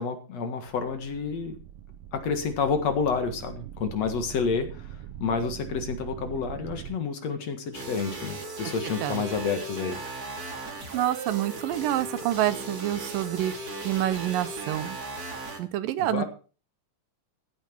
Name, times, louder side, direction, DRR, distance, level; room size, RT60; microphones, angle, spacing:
voice 1, 0.0-1.6 2.1-10.0 16.0-16.2, left 5 dB, 55° left, 7 dB, 2.7 m, -29 dB
sound 1, 0.7-7.0, right 11 dB, 70° right, 1.5 m, -42 dB
sound 2, 7.7-15.6, right 2 dB, 30° right, 2.3 m, -37 dB
voice 2, 10.9-13.5 13.8-15.0 15.6-16.2, right 13 dB, 90° right, 14 dB, 2.6 m, -27 dB
15.0 x 9.4 x 4.5 m, 0.36 s
omnidirectional pair, 3.8 m